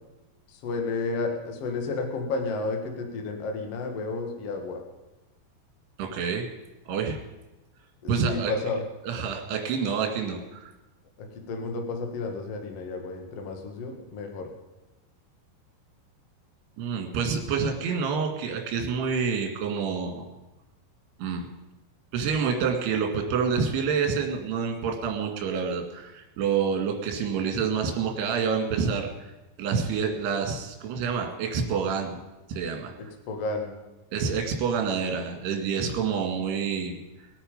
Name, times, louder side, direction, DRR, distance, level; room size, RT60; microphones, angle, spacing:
voice 1, 0.5-4.8 8.0-8.8 11.2-14.5 33.0-33.7, left 3 dB, 60° left, 4 dB, 1.6 m, -32 dB
voice 2, 6.0-6.5 6.9-7.2 8.1-8.5 9.1-10.7 16.8-20.2 21.2-21.5 22.1-29.1 29.6-32.2 32.5-32.9 34.1-37.0, right 6 dB, 65° right, 3 dB, 3.7 m, -27 dB
21.5 x 8.7 x 5.3 m, 1.0 s
omnidirectional pair, 5.5 m